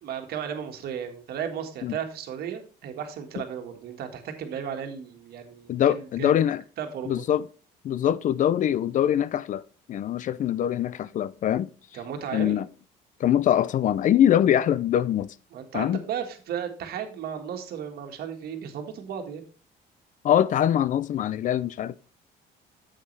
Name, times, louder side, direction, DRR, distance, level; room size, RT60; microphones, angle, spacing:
voice 1, 0.0-6.4 6.8-7.2 11.9-12.6 15.5-19.5, right 8 dB, 65° right, 1.6 m, -35 dB
voice 2, 5.7-6.6 7.1-7.4 7.8-9.6 9.9-11.7 12.3-12.7 13.2-15.3 15.7-16.0 20.2-22.0, left 10 dB, 50° left, 0.4 m, -23 dB
8.3 x 7.4 x 3.2 m
cardioid pair, 110°, 17 cm